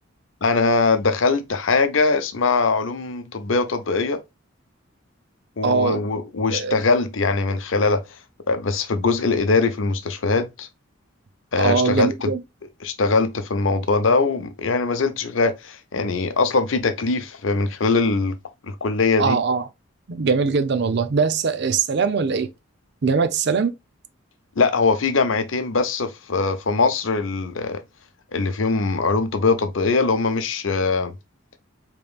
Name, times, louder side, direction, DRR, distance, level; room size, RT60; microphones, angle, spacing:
voice 1, 0.4-4.2 5.6-8.0 8.5-10.7 11.5-12.3 12.8-18.4 18.6-19.4 24.6-27.8 28.3-31.1, left 4 dB, 70° left, 0.7 m, -21 dB
voice 2, 5.6-6.0 6.5-6.8 11.6-12.4 19.2-19.7 20.1-22.5 23.0-23.7, right 5 dB, 55° right, 0.5 m, -21 dB
5.1 x 3.0 x 2.3 m
head